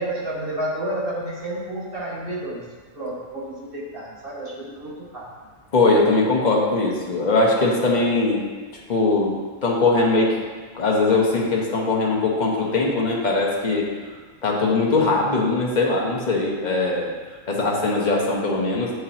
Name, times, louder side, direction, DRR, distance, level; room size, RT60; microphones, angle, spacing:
voice 1, 0.0-2.7 2.9-5.3, right 1 dB, 45° right, -8 dB, 1.9 m, -30 dB
voice 2, 5.7-8.4 8.9-10.4 10.7-13.9 14.4-17.1 17.5-18.9, left 3 dB, 35° left, -2 dB, 1.1 m, -20 dB
8.6 x 4.6 x 2.9 m, 1.4 s
omnidirectional pair, 1.4 m